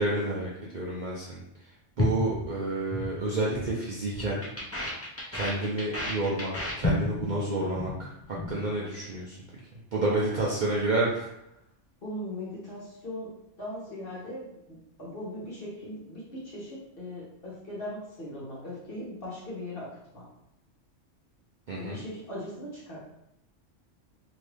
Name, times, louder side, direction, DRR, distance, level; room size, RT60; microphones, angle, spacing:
voice 1, 0.0-1.4 2.0-4.4 5.3-6.5 6.8-8.1 8.5-9.4 9.9-11.3 21.7-22.0, right 2 dB, 50° right, -5 dB, 0.6 m, -29 dB
sound 1, 2.0-3.1 3.4-3.7 4.0-7.4 7.6-7.9 8.2-8.6, left 2 dB, 25° left, 0.3 m, -31 dB
voice 2, 12.0-20.3 21.8-23.0, left 1 dB, 50° left, -7 dB, 1.3 m, -39 dB
2.9 x 2.6 x 3.3 m, 0.81 s
omnidirectional pair, 1.3 m